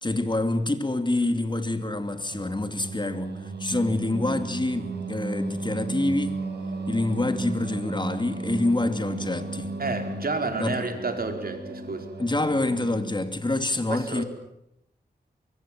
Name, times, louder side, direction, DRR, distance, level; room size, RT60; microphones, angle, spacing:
voice 1, 0.0-6.4 6.9-9.7 10.6-10.8 12.2-14.2, left 2 dB, 25° left, 2.6 m, -26 dB
Singing, 2.3-13.5, right 3 dB, 75° right, 4.3 m, -34 dB
sound 1, 7.5-11.9, left 1 dB, 5° right, 7.4 m, -48 dB
voice 2, 9.8-12.0 13.9-14.2, right 3 dB, 60° right, 4.6 m, -30 dB
24.0 x 23.5 x 7.5 m
wide cardioid pair, 70°, 17 cm